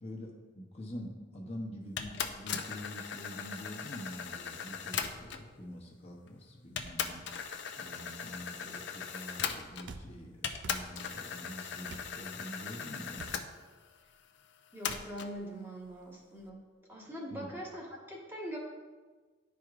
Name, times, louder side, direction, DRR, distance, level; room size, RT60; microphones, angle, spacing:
voice 1, 0.0-7.2 7.8-13.3 17.3-17.5, equal, 35° left, -2 dB, 0.8 m, -45 dB
sound 1, 2.0-5.5 6.3-6.4 6.8-10.0 10.4-13.5 14.8-15.3, left 7 dB, 65° left, 0.5 m, -39 dB
sound 2, 9.8-10.1 10.6-10.8 11.9-12.1 13.2-13.4 14.9-15.1, right 4 dB, 65° right, 0.4 m, -46 dB
voice 2, 14.7-16.6 16.9-18.6, equal, 10° right, -4 dB, 1.3 m, -42 dB
11.0 x 4.6 x 2.4 m, 1.4 s
head